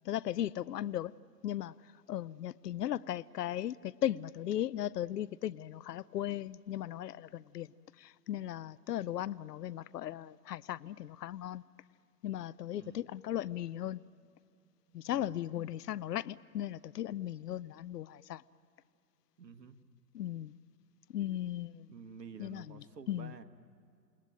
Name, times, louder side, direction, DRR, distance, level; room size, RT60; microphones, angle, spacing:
voice 1, 0.0-1.1 1.4-11.6 12.2-14.0 14.9-18.4 20.1-20.5 21.1-21.9 22.4-23.3, left 12 dB, 75° left, 0.7 m, -37 dB
voice 2, 14.9-15.3 19.4-19.8 21.9-23.4, right 5 dB, 80° right, 1.8 m, -50 dB
28.5 x 20.0 x 9.2 m
hypercardioid pair, 120°, 48 cm